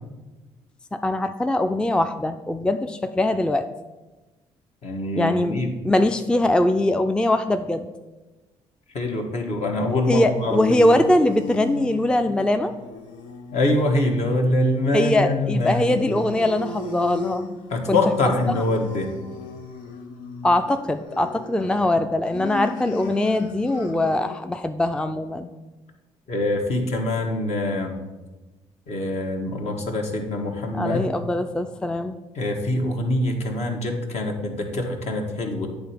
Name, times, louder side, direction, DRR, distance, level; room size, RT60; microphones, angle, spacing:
voice 1, 0.9-3.7 5.2-7.9 10.1-12.7 14.9-17.6 17.9-18.0 20.4-25.5 30.7-32.2, left 1 dB, 5° left, 8 dB, 0.4 m, -22 dB
voice 2, 4.8-5.7 8.9-10.6 13.5-16.0 17.7-19.1 26.3-27.9 28.9-31.1 32.3-35.7, left 1 dB, 60° left, 2 dB, 1.3 m, -24 dB
sound 1, 10.0-24.5, left 4 dB, 85° left, 0.7 m, -35 dB
8.7 x 3.4 x 5.7 m, 1.1 s
supercardioid pair, 60°, 13 cm